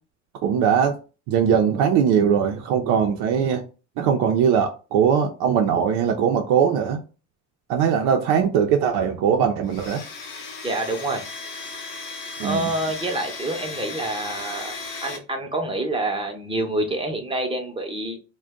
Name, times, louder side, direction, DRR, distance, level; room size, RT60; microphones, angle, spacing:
voice 1, 0.4-1.0 1.3-3.6 4.0-7.0 7.7-10.0 12.4-12.7, right 7 dB, 65° right, 0.6 m, -20 dB
Domestic sounds home sounds, 9.7-15.2, left 3 dB, 50° left, 1.1 m, -36 dB
voice 2, 10.6-11.2 12.4-14.7 15.0-18.2, right 2 dB, 15° right, 0.8 m, -27 dB
2.4 x 2.2 x 3.6 m
hypercardioid pair, 70°, 42 cm